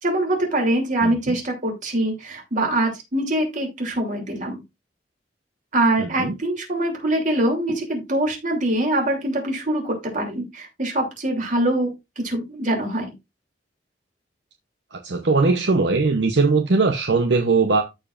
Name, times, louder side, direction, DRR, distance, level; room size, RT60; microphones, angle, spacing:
voice 1, 0.0-4.6 5.7-11.9 12.2-13.1, right 1 dB, 45° right, 2.9 m, -23 dB
voice 2, 1.0-1.4 6.0-6.3 14.9-17.8, right 3 dB, 70° right, 0.8 m, -20 dB
14.0 x 4.9 x 2.5 m
head